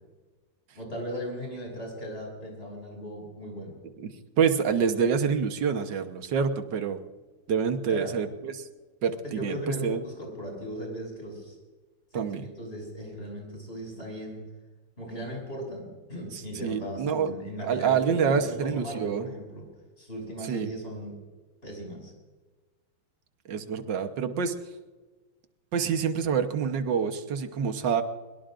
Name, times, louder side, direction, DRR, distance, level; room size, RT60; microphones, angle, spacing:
voice 1, 0.7-3.8 7.9-8.1 9.2-11.6 12.1-14.4 15.0-19.7 20.0-21.2 21.6-22.1, equal, 30° left, -1 dB, 6.6 m, -37 dB
voice 2, 4.0-7.0 7.5-8.7 9.0-10.0 12.1-12.5 16.6-17.3 17.6-19.3 20.4-20.7 23.5-24.5 25.7-28.0, right 6 dB, 65° right, 8 dB, 1.7 m, -27 dB
22.5 x 22.0 x 2.5 m, 1.3 s
omnidirectional pair, 2.2 m